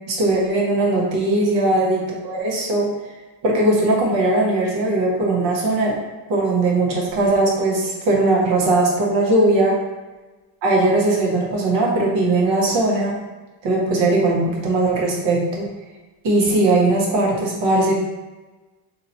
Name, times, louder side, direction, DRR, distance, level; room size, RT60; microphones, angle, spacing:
voice 1, 0.1-2.9 3.4-6.0 6.3-9.7 10.6-13.2 13.6-15.7 16.2-18.0, right 2 dB, 70° right, -2 dB, 1.3 m, -19 dB
2.9 x 2.9 x 4.1 m, 1.2 s
supercardioid pair, 80°, 46 cm